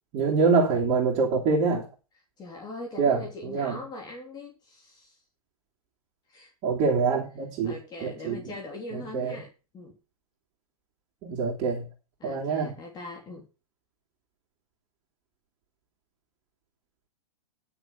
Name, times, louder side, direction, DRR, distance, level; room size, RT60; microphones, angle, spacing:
voice 1, 0.1-1.9 3.0-3.8 6.6-8.5 8.9-9.4 11.2-11.9 12.2-12.7, right 5 dB, 35° right, 3.2 m, -25 dB
voice 2, 2.4-5.2 6.3-6.5 7.6-9.9 12.2-13.4, left 2 dB, 20° left, 3.3 m, -41 dB
11.5 x 6.8 x 5.7 m
hypercardioid pair, 130°, 19 cm